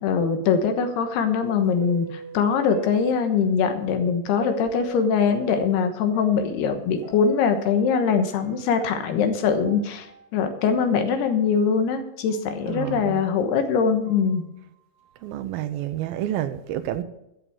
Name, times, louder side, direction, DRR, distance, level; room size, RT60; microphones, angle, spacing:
voice 1, 0.0-10.1 10.3-14.5, left 6 dB, 75° left, 3.2 m, -22 dB
sound 1, 1.4-3.6 4.4-7.6 7.9-10.3 10.5-10.6 11.4-11.5 12.3-12.5 13.1-13.2 14.0-14.3, right 1 dB, 45° right, 2.1 m, -41 dB
voice 2, 12.7-13.2 15.2-17.0, right 12 dB, 80° right, 2.2 m, -29 dB
13.5 x 6.8 x 7.3 m
omnidirectional pair, 4.8 m